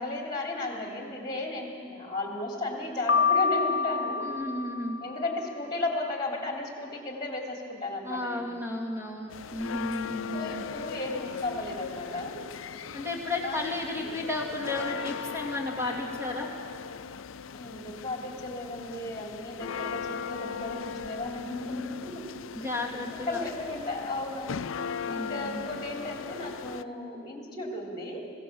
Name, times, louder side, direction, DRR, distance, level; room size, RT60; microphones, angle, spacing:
voice 1, 0.0-4.3 5.0-8.5 10.3-12.5 13.4-13.6 17.5-22.3 23.1-24.6 25.1-28.3, left 2 dB, 20° left, 0 dB, 3.1 m, -35 dB
Piano, 3.1-5.2, left 5 dB, 60° left, 0.8 m, -27 dB
voice 2, 4.2-5.0 8.0-10.5 12.9-16.5 22.5-23.4 25.1-25.7, left 2 dB, 15° right, -1 dB, 2.7 m, -33 dB
sound 1, 9.3-26.8, left 6 dB, 85° left, 0.5 m, -38 dB
24.0 x 16.5 x 7.1 m, 2.3 s
head